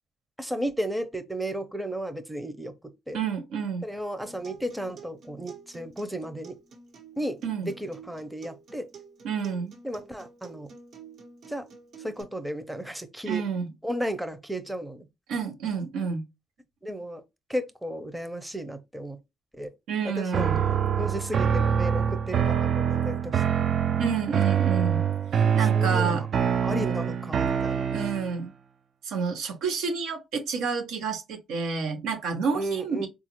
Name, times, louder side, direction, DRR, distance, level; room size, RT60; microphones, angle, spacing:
voice 1, 0.4-2.7 3.1-3.2 3.8-6.6 7.2-8.9 9.8-10.7 11.5-11.7 12.0-13.4 13.8-15.1 16.8-17.2 17.5-19.2 19.5-19.7 20.0-23.6 25.4-26.3 26.6-27.9 32.5-33.1, right 1 dB, 5° right, 0.6 m, -34 dB
voice 2, 3.1-3.8 7.4-7.7 9.2-9.8 13.3-13.6 15.3-16.2 19.9-20.6 24.0-25.0 25.5-26.2 27.9-28.5 29.0-33.1, right 5 dB, 90° right, 0.8 m, -29 dB
Acoustic guitar, 4.2-12.2, right 5 dB, 75° right, 1.3 m, -49 dB
sound 1, 20.3-28.4, right 8 dB, 55° right, 0.3 m, -25 dB
3.9 x 2.4 x 2.9 m
cardioid pair, 90°, 0 cm